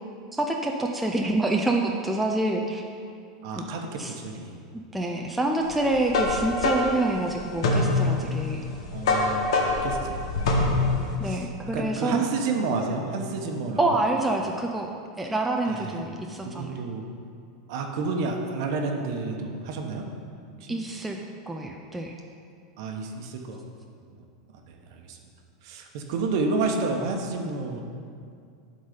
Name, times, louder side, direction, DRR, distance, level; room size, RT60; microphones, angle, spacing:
voice 1, 0.3-2.8 3.5-3.6 3.9-4.1 4.7-8.6 11.2-12.2 13.8-14.9 15.2-16.7 20.7-21.2 21.5-22.2, right 2 dB, 5° right, 0 dB, 0.3 m, -27 dB
voice 2, 3.4-4.6 8.9-10.6 11.2-11.5 11.7-13.8 15.7-16.0 16.4-17.0 17.7-20.0 20.6-20.8 22.8-23.6 24.1-24.2 24.7-25.2 25.6-27.8, right 3 dB, 50° right, 3 dB, 0.9 m, -30 dB
sound 1, 5.7-11.1, left 2 dB, 80° left, 1.4 m, -25 dB
11.5 x 4.0 x 5.0 m, 2.3 s
supercardioid pair, 170°, 3 cm